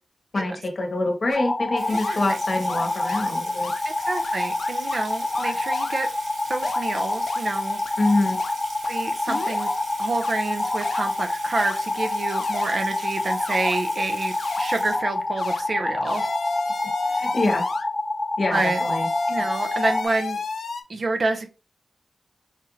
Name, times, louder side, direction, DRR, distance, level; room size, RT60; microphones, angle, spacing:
voice 1, 0.3-3.7 8.0-8.4 17.0-17.6 18.4-19.1, left 2 dB, 45° left, 3 dB, 1.0 m, -25 dB
sound 1, 1.3-1.4 1.9-2.2 2.7-2.8 3.1-3.3 3.6-3.8 4.2-4.3 4.6-5.0 5.4-6.0 6.6-6.8 7.3-7.4 7.9-8.0 8.4-8.5 8.8-8.9 9.3-9.7 10.2-10.3 10.8-11.0 11.5-11.8 12.3-12.8 13.4-13.8 14.4-14.6 15.4-15.6 16.0-17.9 18.5-20.8, left 3 dB, 85° left, 0.5 m, -32 dB
sound 2, 1.3-20.0, left 2 dB, 25° left, 0.5 m, -27 dB
Water tap faucet / Sink (filling or washing), 1.8-15.5, right 3 dB, 75° right, 0.9 m, -42 dB
voice 2, 3.8-6.1 6.5-7.8 8.9-9.7 10.0-16.2 18.5-18.8 19.3-20.4 20.9-21.5, right 3 dB, 45° right, 6 dB, 0.5 m, -28 dB
4.3 x 2.5 x 3.0 m, 0.31 s
wide cardioid pair, 155°, 0 cm